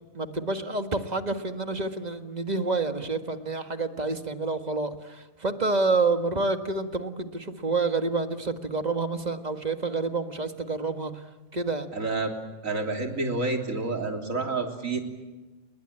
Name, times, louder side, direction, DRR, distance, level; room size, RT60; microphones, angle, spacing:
voice 1, 0.1-4.9 5.4-11.1 11.5-11.9, right 3 dB, 35° right, 8 dB, 1.7 m, -28 dB
voice 2, 11.9-12.3 12.6-15.0, right 3 dB, 85° right, 4 dB, 3.6 m, -29 dB
29.5 x 22.0 x 8.9 m, 1.2 s
omnidirectional pair, 1.3 m